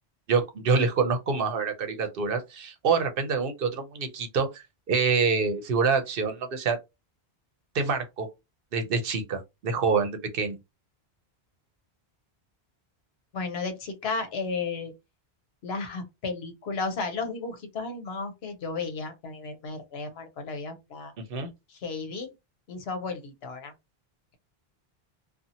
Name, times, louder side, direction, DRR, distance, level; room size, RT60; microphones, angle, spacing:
voice 1, 0.3-6.8 7.7-8.3 8.7-10.6 21.3-21.5, right 5 dB, 65° right, 0.8 m, -26 dB
voice 2, 13.3-14.9 15.6-21.1 21.7-22.3 22.7-23.7, left 4 dB, 85° left, 1.0 m, -34 dB
2.6 x 2.4 x 2.7 m
omnidirectional pair, 1.0 m